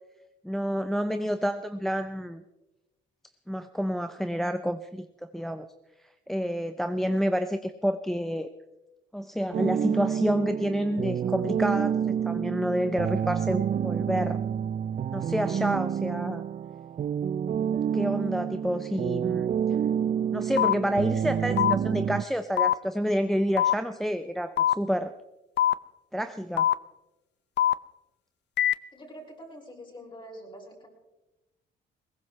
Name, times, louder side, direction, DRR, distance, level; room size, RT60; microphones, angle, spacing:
voice 1, 0.4-2.4 3.5-5.7 6.3-8.5 9.1-12.0 12.2-14.4 15.1-16.4 17.9-19.5 20.3-25.1 26.1-26.7, equal, ahead, 9 dB, 0.6 m, -29 dB
sound 1, 9.5-22.2, right 8 dB, 40° right, 0.4 m, -28 dB
sound 2, 20.6-20.7 21.6-21.7 22.6-22.7 23.6-23.7 24.6-24.7 25.6-25.7 26.6-26.7 27.6-27.7 28.6-28.7, left 11 dB, 60° left, 0.6 m, -22 dB
voice 2, 28.9-30.9, equal, 25° left, -1 dB, 6.0 m, -45 dB
21.0 x 17.5 x 3.2 m, 1.0 s
cardioid pair, 90°, 20 cm